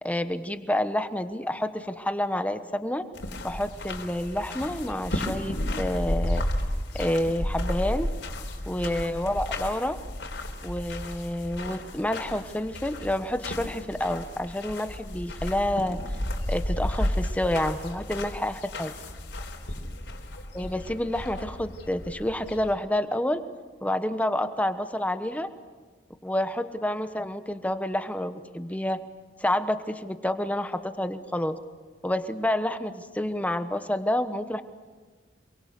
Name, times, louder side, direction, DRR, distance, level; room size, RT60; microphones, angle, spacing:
voice 1, 0.0-3.0 3.4-6.4 6.9-8.1 8.7-10.0 10.6-16.0 16.5-18.9 20.5-23.4 23.8-25.5 26.2-29.0 29.4-31.6 32.0-34.6, left 1 dB, 10° left, 9 dB, 1.1 m, -28 dB
sound 1, 3.1-22.7, left 1 dB, 80° left, 3.8 m, -33 dB
27.5 x 23.5 x 6.7 m, 1.4 s
head